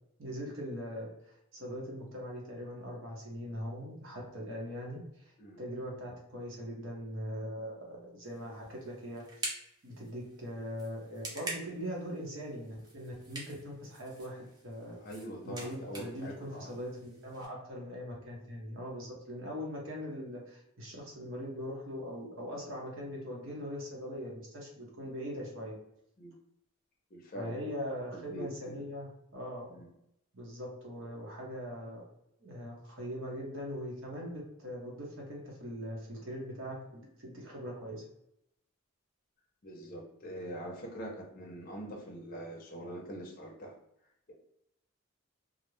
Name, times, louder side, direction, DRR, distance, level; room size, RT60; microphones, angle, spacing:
voice 1, 0.2-1.1 1.5-9.5 9.8-15.0 15.4-25.7 27.3-29.7 30.3-32.0 32.4-38.0, equal, 75° right, -3 dB, 0.8 m, -41 dB
sound 1, 8.2-17.5, right 2 dB, 20° right, 0.5 m, -46 dB
voice 2, 15.0-16.7 26.2-26.4 27.1-27.6 28.1-28.9 29.7-29.9 39.6-43.7 44.3-44.4, right 1 dB, 45° left, -1 dB, 0.5 m, -44 dB
2.4 x 2.0 x 3.0 m, 0.79 s
head